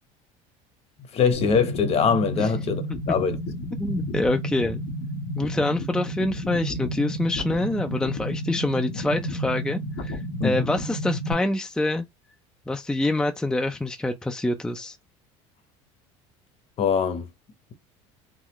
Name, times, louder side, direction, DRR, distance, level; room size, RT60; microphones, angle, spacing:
voice 1, 1.1-2.8 3.1-3.4 10.4-10.7 16.8-17.3, left 6 dB, 40° left, 1.0 m, -22 dB
sound 1, 1.3-11.3, equal, 75° left, 1.1 m, -31 dB
voice 2, 3.8-4.8 5.4-12.0 12.7-15.0, left 2 dB, 5° left, 0.4 m, -26 dB
3.9 x 2.1 x 3.0 m
supercardioid pair, 105°, 15 cm